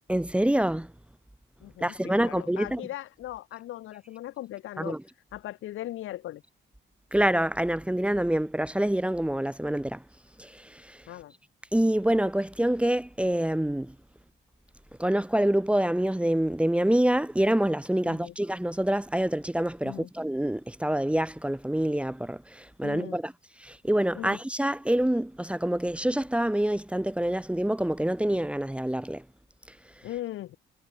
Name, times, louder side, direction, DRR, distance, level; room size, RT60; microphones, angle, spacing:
voice 1, 0.1-0.9 1.8-2.8 4.8-5.0 7.1-10.0 10.4-11.0 11.7-13.9 15.0-23.3 23.6-29.2, right 1 dB, 5° right, 2.0 m, -26 dB
voice 2, 1.6-5.0 5.3-6.4 11.1-11.3 18.0-18.3 19.8-20.1 22.8-23.2 24.1-24.4 30.0-30.6, left 14 dB, 85° left, 7.6 m, -39 dB
cardioid pair, 90°, 20 cm